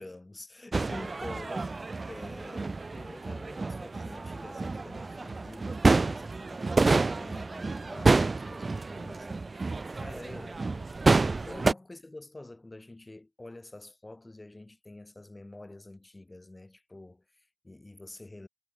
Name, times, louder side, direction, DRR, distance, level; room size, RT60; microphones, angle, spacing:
voice 1, 0.0-1.7 2.1-18.5, left 2 dB, 30° left, 7.7 m, -47 dB
sound 1, 0.7-11.7, right 3 dB, 50° right, 0.9 m, -28 dB
cardioid pair, 40°, 0 cm